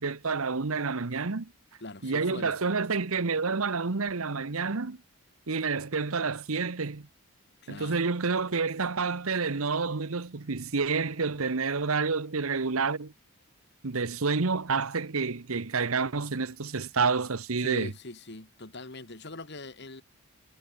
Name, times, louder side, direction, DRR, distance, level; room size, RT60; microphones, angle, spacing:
voice 1, 0.0-1.5 2.0-5.0 5.5-7.1 7.7-13.1 13.8-17.9, right 4 dB, 75° right, 1.0 m, -29 dB
voice 2, 1.8-2.6 7.6-8.1 17.6-20.0, left 2 dB, 50° left, 2.2 m, -42 dB
head